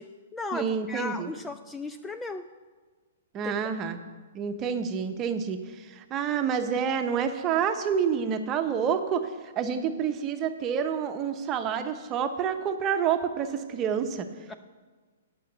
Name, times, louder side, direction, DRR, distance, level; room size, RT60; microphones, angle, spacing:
voice 1, 0.0-2.4 3.4-3.7 14.5-14.6, left 3 dB, 10° left, 8 dB, 0.4 m, -36 dB
voice 2, 0.5-1.3 3.3-4.0 4.3-5.6 5.9-9.3 9.6-14.3, right 7 dB, 25° right, 7 dB, 0.9 m, -28 dB
8.5 x 6.1 x 8.1 m, 1.4 s
figure-of-eight pair, 120°, 0 cm